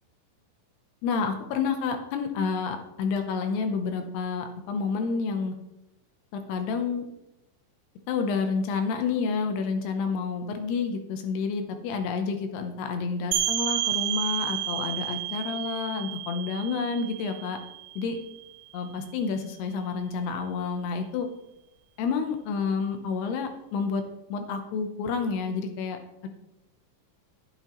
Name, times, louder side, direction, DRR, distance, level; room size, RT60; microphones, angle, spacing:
voice 1, 1.0-5.6 6.3-7.1 8.1-17.6 18.0-18.2 18.7-21.3 22.0-24.0 24.3-26.3, left 5 dB, 80° left, 6 dB, 2.4 m, -29 dB
sound 1, 13.3-18.8, right 12 dB, 75° right, 3.3 m, -31 dB
14.0 x 9.0 x 3.0 m, 0.88 s
omnidirectional pair, 5.7 m